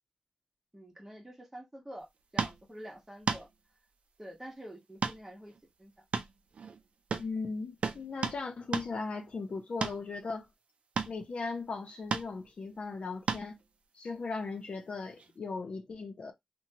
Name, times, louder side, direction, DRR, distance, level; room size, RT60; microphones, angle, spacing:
voice 1, 0.7-2.1 2.3-3.5 4.2-5.5 5.8-6.0, equal, 20° right, 1.1 m, -47 dB
sound 1, 2.4-2.6 3.3-3.4 5.0-5.2 5.5-5.6 6.1-6.8 7.1-7.3 7.8-8.4 8.7-8.9 9.8-10.0 11.0-11.2 12.1-12.3 13.3-13.5 15.2-15.3, right 5 dB, 85° right, 0.4 m, -33 dB
voice 2, 7.2-10.5 11.1-13.6 13.9-16.3, left 4 dB, 70° left, 0.7 m, -38 dB
2.9 x 2.3 x 2.8 m
wide cardioid pair, 75°, 2 cm